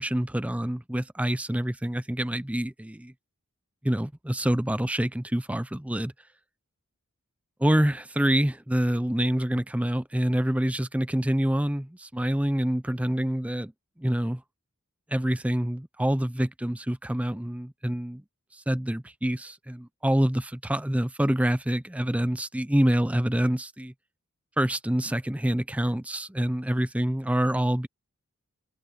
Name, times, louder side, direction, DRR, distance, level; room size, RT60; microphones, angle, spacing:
voice 1, 0.0-3.1 3.8-6.1 7.6-13.7 14.0-14.4 15.1-18.2 18.5-23.9 24.6-27.9, right 1 dB, 5° right, 0.5 m, -26 dB
head